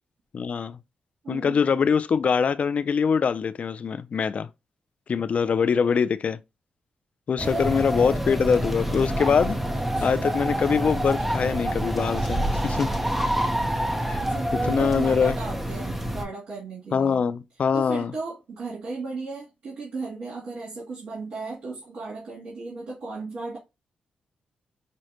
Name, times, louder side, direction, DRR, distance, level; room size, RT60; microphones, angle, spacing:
voice 1, 0.3-0.8 1.3-4.5 5.1-6.4 7.3-9.6 10.0-12.9 14.1-14.2 14.7-15.4 16.9-18.1, left 6 dB, 55° left, 0.4 m, -23 dB
voice 2, 1.2-1.8 7.4-7.7 9.7-10.5 13.2-13.7 14.2-17.3 17.7-23.6, right 3 dB, 80° right, 2.3 m, -36 dB
sound 1, 7.4-16.2, right 1 dB, 10° right, 0.7 m, -27 dB
6.2 x 2.1 x 2.8 m
cardioid pair, 80°, 3 cm